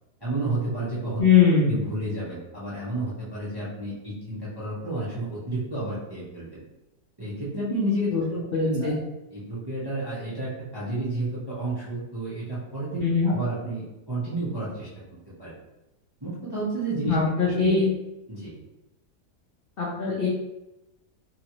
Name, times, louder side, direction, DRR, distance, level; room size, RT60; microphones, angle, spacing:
voice 1, 0.2-1.2 1.7-6.6 7.2-8.9 9.3-14.9 15.4-15.5 16.2-17.8 18.3-18.6, right 2 dB, 25° right, -8 dB, 0.5 m, -31 dB
voice 2, 1.2-1.7 8.1-8.2 8.5-9.0 13.0-13.3 17.1-17.9 19.8-20.3, left 6 dB, 65° left, -5 dB, 0.5 m, -21 dB
3.0 x 2.9 x 2.9 m, 0.97 s
omnidirectional pair, 1.8 m